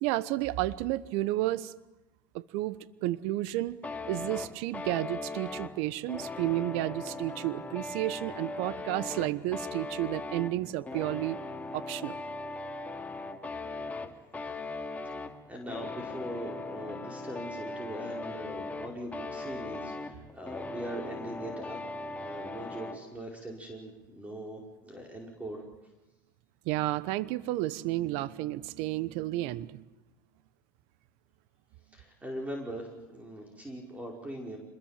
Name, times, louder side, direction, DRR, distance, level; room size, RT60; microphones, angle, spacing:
voice 1, 0.0-1.7 2.3-3.8 4.1-11.4 11.7-12.2 26.6-29.8, right 16 dB, 65° right, 17 dB, 1.1 m, -32 dB
sound 1, 3.8-23.0, left 3 dB, 15° left, 2.6 m, -39 dB
voice 2, 15.5-25.6 31.9-34.6, right 1 dB, 10° right, 0 dB, 5.0 m, -41 dB
26.0 x 22.0 x 7.5 m, 1.0 s
hypercardioid pair, 95°, 11 cm